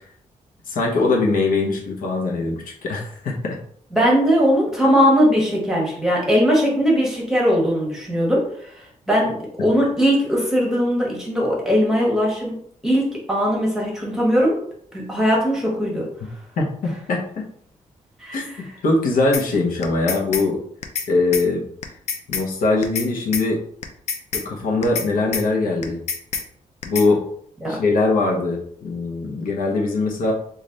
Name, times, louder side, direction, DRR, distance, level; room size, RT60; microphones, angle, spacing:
voice 1, 0.7-3.6 16.6-17.4 18.3-20.6 21.1-21.6 22.3-23.6 24.3-26.0 26.8-27.2 27.7-30.3, left 3 dB, 90° left, -1 dB, 0.9 m, -21 dB
voice 2, 3.9-8.7 9.1-12.5 12.8-14.6 14.9-16.1 18.2-18.4 27.6-27.8, equal, 5° right, -3 dB, 1.3 m, -19 dB
sound 1, 19.3-19.4 19.8-20.4 20.8-21.1 21.3-21.4 21.8-22.4 22.8-23.1 23.3-23.4 23.8-24.4 24.8-25.1 25.3-25.4 25.8-26.4 26.8-27.1, left 6 dB, 50° left, 0.5 m, -26 dB
3.2 x 2.5 x 3.9 m, 0.64 s
wide cardioid pair, 130°, 14 cm